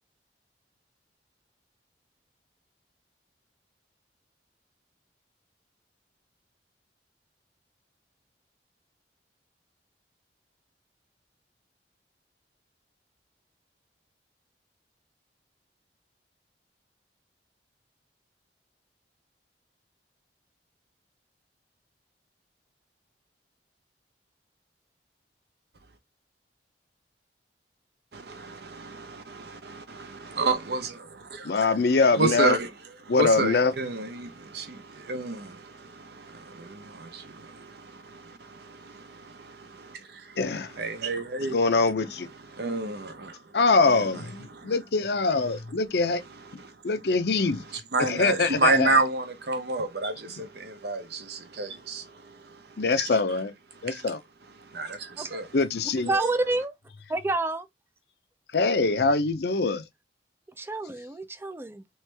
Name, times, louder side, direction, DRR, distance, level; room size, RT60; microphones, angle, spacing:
voice 1, 28.1-31.6 32.2-32.7 33.0-40.4 40.8-41.6 42.5-43.4 44.5-44.7 47.9-52.6 53.9-54.0 54.7-55.5 56.2-56.4, right 3 dB, 65° right, 0.8 m, -30 dB
voice 2, 31.4-32.6 33.1-33.7 40.4-40.7 41.4-42.3 43.5-46.2 46.8-47.6 48.0-49.0 52.8-53.5 53.8-54.2 55.5-56.1 58.5-59.8, left 3 dB, 65° left, 0.6 m, -23 dB
voice 3, 56.1-56.7 57.1-57.7 60.6-61.8, right 2 dB, 15° right, 0.4 m, -28 dB
3.2 x 3.2 x 3.3 m
head